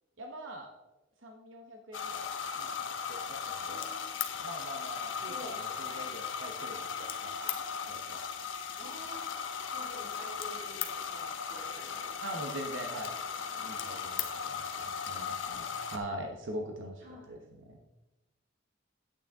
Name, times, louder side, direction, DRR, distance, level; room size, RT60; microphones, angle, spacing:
voice 1, 0.2-0.7 1.2-2.3 2.6-3.9 4.4-7.3 7.9-8.2 12.2-13.1 13.6-17.4 17.7-17.8, right 1 dB, 90° right, 2 dB, 1.1 m, -43 dB
sound 1, 1.9-16.0, left 6 dB, 90° left, 0.9 m, -37 dB
voice 2, 3.7-4.1 5.3-5.6 8.8-9.3 9.7-12.5 12.8-13.7 17.0-17.3, equal, 45° right, -2 dB, 2.6 m, -49 dB
9.0 x 8.7 x 3.6 m, 1.0 s
head